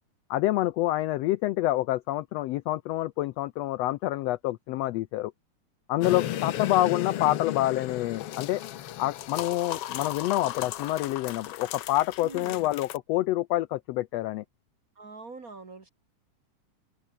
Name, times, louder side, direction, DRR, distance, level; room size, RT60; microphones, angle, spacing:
voice 1, 0.3-5.3 5.9-8.6 9.0-14.4, left 15 dB, 85° left, 1.4 m, -27 dB
voice 2, 5.9-6.4 12.2-12.6 15.0-15.9, right 4 dB, 35° right, 1.6 m, -45 dB
sound 1, 6.0-13.0, left 12 dB, 65° left, 1.6 m, -35 dB
omnidirectional pair, 3.6 m